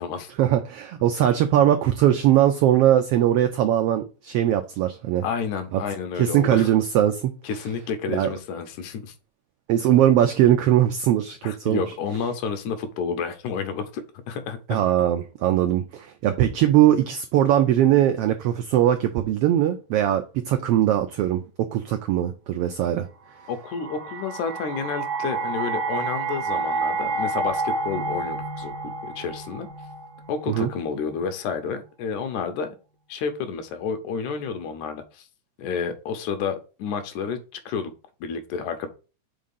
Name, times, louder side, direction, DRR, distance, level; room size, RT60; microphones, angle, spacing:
voice 1, 0.4-5.2 5.7-5.8 6.2-7.3 8.1-8.3 9.7-11.8 14.7-23.1 30.5-30.7, right 11 dB, 85° right, 1.3 m, -20 dB
voice 2, 5.2-6.7 7.4-9.1 11.4-14.8 23.5-29.7 30.3-32.7 33.1-35.3 35.6-37.4 37.7-37.9 38.2-38.9, left 6 dB, 85° left, 2.3 m, -30 dB
sound 1, 23.5-30.6, right 3 dB, 50° right, 1.3 m, -29 dB
5.1 x 3.7 x 5.3 m
omnidirectional pair, 3.3 m